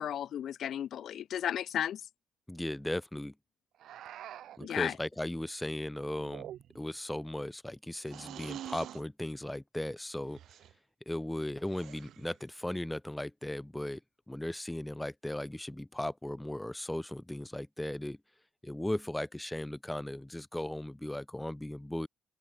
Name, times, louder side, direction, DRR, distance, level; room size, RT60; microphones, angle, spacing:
voice 1, 0.0-2.0 4.6-4.9, left 10 dB, 65° left, 1.2 m, -34 dB
voice 2, 2.5-3.3 4.6-10.4 11.1-14.0 14.3-18.2 18.6-22.1, left 1 dB, 5° left, 1.0 m, -37 dB
sound 1, 3.8-4.7 6.2-6.9 8.1-9.1 10.3-10.7 11.6-12.4, right 11 dB, 75° right, 1.5 m, -46 dB
open air
cardioid pair, 100°, 0 cm